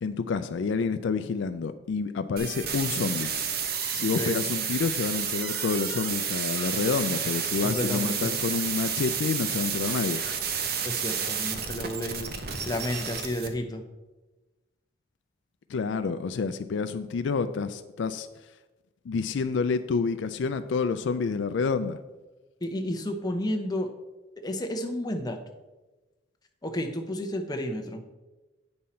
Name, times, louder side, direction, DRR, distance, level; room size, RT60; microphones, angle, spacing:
voice 1, 0.0-3.3 3.9-10.2 15.7-18.3 19.1-22.0, left 5 dB, 70° left, 11 dB, 0.4 m, -28 dB
sound 1, 2.4-13.5, right 7 dB, 50° right, 0.7 m, -31 dB
voice 2, 7.6-8.3 10.8-12.3 12.7-13.8 22.6-23.9 24.4-25.4 26.6-28.0, left 1 dB, 20° left, 4 dB, 0.7 m, -31 dB
8.7 x 5.5 x 4.3 m, 1.1 s
head